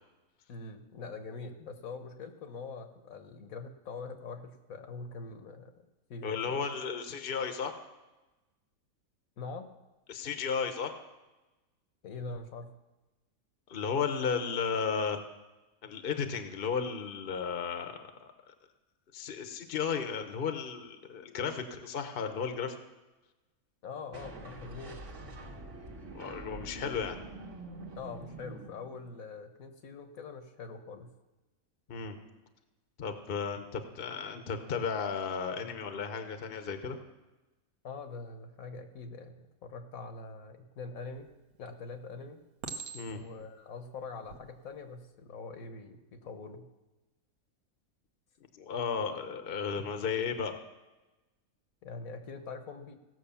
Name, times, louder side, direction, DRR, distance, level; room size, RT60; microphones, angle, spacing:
voice 1, 0.5-5.7 6.1-6.6 9.4-9.7 12.0-12.7 23.8-25.0 27.9-31.1 37.8-41.3 41.6-42.4 43.1-46.7 51.8-53.0, left 4 dB, 75° left, 7 dB, 1.4 m, -43 dB
voice 2, 6.2-7.7 10.1-10.9 13.7-15.2 15.8-18.3 19.1-22.8 26.1-27.2 31.9-32.2 33.0-37.0 42.9-43.2 48.5-50.6, left 6 dB, 45° left, 7 dB, 1.0 m, -34 dB
sound 1, 24.1-29.3, right 2 dB, 55° right, 1.6 m, -46 dB
Chink clink, 41.1-41.6 42.6-43.4 44.1-44.4, right 5 dB, 85° right, 1.4 m, -42 dB
16.0 x 6.2 x 7.0 m, 1.1 s
omnidirectional pair, 1.5 m